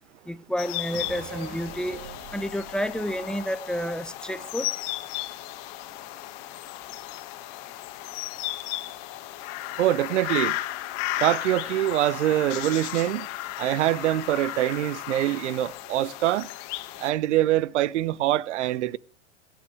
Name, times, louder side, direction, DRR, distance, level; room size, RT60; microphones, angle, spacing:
voice 1, 0.3-2.0 2.3-4.7, equal, ahead, 0.8 m, -30 dB
sound 1, 0.6-17.1, left 16 dB, 55° left, 1.6 m, -35 dB
sound 2, 0.9-4.5 4.8-4.9, right 10 dB, 45° right, 1.1 m, -45 dB
voice 2, 9.8-10.6 11.2-13.3 13.6-16.5 17.0-19.0, right 14 dB, 75° right, 0.6 m, -24 dB
23.5 x 9.2 x 3.4 m
hypercardioid pair, 105°, 36 cm